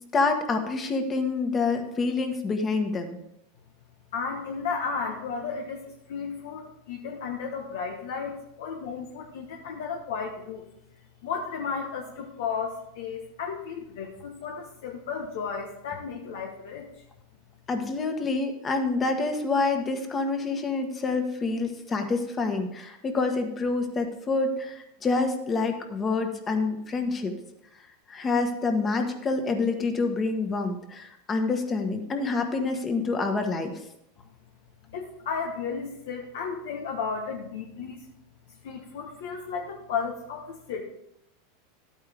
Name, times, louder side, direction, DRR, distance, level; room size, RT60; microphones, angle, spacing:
voice 1, 0.1-3.2 17.7-27.3 28.1-33.7, left 3 dB, 25° left, 6 dB, 1.4 m, -27 dB
voice 2, 4.1-10.6 11.2-17.0 34.9-38.1 38.5-40.8, left 5 dB, 75° left, 1 dB, 1.2 m, -34 dB
12.0 x 8.9 x 3.5 m, 0.81 s
supercardioid pair, 125°, 0 cm